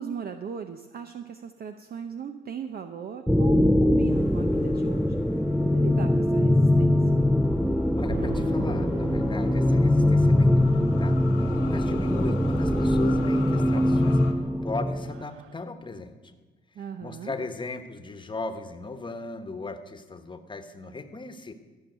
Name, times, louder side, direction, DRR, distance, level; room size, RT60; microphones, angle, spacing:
voice 1, 0.0-5.2 5.6-7.0 16.8-17.3, right 7 dB, 50° right, 7 dB, 0.7 m, -37 dB
sound 1, 3.3-15.2, left 1 dB, ahead, 0.4 m, -22 dB
sound 2, 4.1-14.3, left 9 dB, 85° left, 1.2 m, -45 dB
voice 2, 8.0-14.2 14.6-16.4 16.8-21.5, left 3 dB, 25° left, 8 dB, 1.2 m, -37 dB
sound 3, 8.1-12.0 13.8-14.3 14.6-14.7 15.0-15.6, right 11 dB, 85° right, 0.5 m, -41 dB
14.0 x 5.7 x 9.1 m, 1.3 s
cardioid pair, 90°, 20 cm